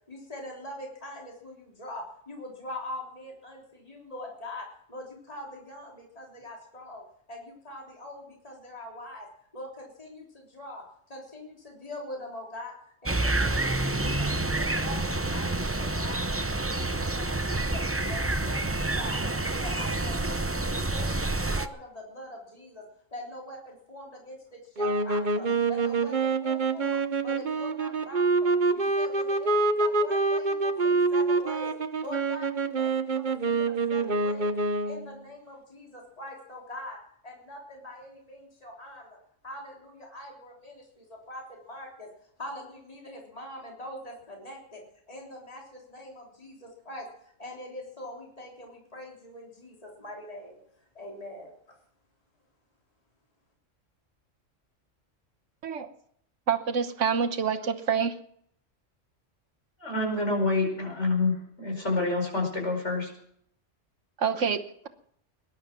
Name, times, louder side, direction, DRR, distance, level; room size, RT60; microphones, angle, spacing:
voice 1, 0.1-7.0 7.3-9.3 9.5-12.7 13.0-14.3 14.6-16.2 16.5-17.8 18.1-19.3 19.6-22.9 23.1-31.7 32.0-34.5 34.8-37.0 37.2-39.2 39.4-42.1 42.4-44.8 45.1-47.1 47.4-50.6 50.9-51.5, left 1 dB, 30° left, -2 dB, 3.6 m, -43 dB
sound 1, 13.1-21.7, right 2 dB, 15° right, 0.5 m, -28 dB
sound 2, 24.8-35.1, right 3 dB, 40° right, 1.0 m, -26 dB
voice 2, 56.5-58.1 64.2-64.9, right 6 dB, 70° right, 7 dB, 1.4 m, -27 dB
voice 3, 59.8-63.1, left 3 dB, 65° left, 1 dB, 5.4 m, -27 dB
20.0 x 11.5 x 6.0 m, 0.67 s
omnidirectional pair, 1.3 m